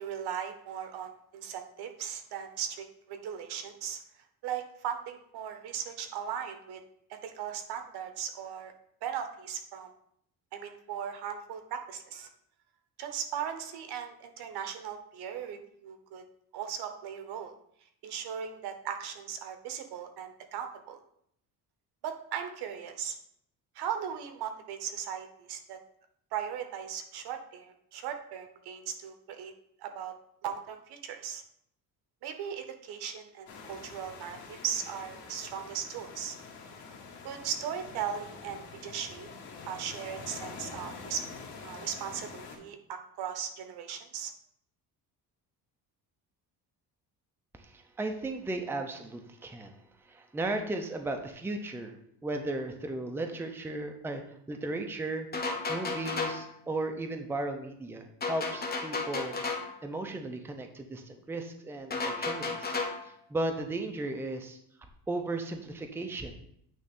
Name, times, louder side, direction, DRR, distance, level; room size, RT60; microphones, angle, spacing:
voice 1, 0.0-4.0 4.4-6.8 7.1-8.7 9.0-9.9 10.5-12.3 13.0-16.2 16.5-17.5 18.0-21.0 22.0-23.2 23.7-25.8 26.3-29.5 29.8-30.1 30.4-31.4 32.2-36.3 37.2-39.3 39.6-41.2 41.6-44.3, right 8 dB, 75° right, 7 dB, 1.1 m, -38 dB
sound 1, 33.5-42.6, left 4 dB, 80° left, 2.1 m, -46 dB
voice 2, 47.5-49.8 50.1-54.2 54.5-55.3 55.7-59.4 59.8-62.8 63.0-64.6 65.1-66.4, right 2 dB, 5° right, 5 dB, 0.6 m, -35 dB
sound 2, 55.3-56.5 58.2-59.8 61.9-63.1, left 3 dB, 25° left, 1.1 m, -33 dB
9.1 x 3.2 x 5.3 m, 0.70 s
cardioid pair, 145°, 39 cm